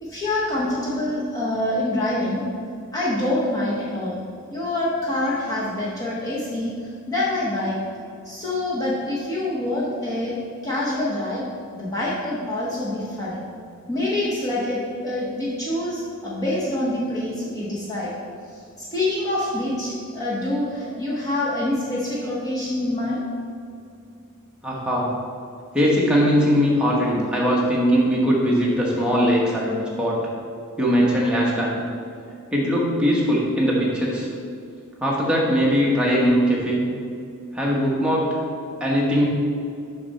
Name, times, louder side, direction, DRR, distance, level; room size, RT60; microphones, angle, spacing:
voice 1, 0.0-2.5 2.9-4.2 4.5-7.8 8.2-10.3 10.6-11.4 11.7-13.4 13.9-18.1 18.5-23.2, left 1 dB, 15° left, -6 dB, 0.9 m, -26 dB
voice 2, 24.6-25.1 25.7-30.2 30.8-31.8 32.5-34.3 35.0-36.8 37.5-38.4 38.8-39.2, equal, 5° right, -5 dB, 1.1 m, -20 dB
6.9 x 6.0 x 4.1 m, 2.4 s
head